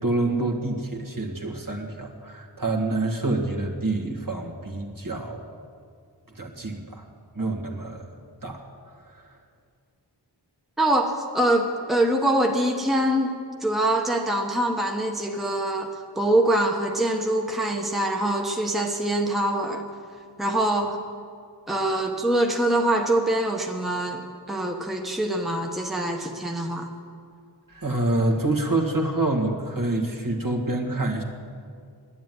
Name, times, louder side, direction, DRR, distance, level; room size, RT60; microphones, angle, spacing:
voice 1, 0.0-5.4 6.3-7.0 7.4-8.1 8.4-8.6 8.9-9.0 27.7-31.2, right 2 dB, 50° right, 1 dB, 1.8 m, -27 dB
voice 2, 10.8-13.3 13.6-19.8 20.4-21.0 21.7-26.9, right 1 dB, ahead, 2 dB, 1.1 m, -24 dB
11.0 x 10.0 x 9.3 m, 2.2 s
wide cardioid pair, 45°, 43 cm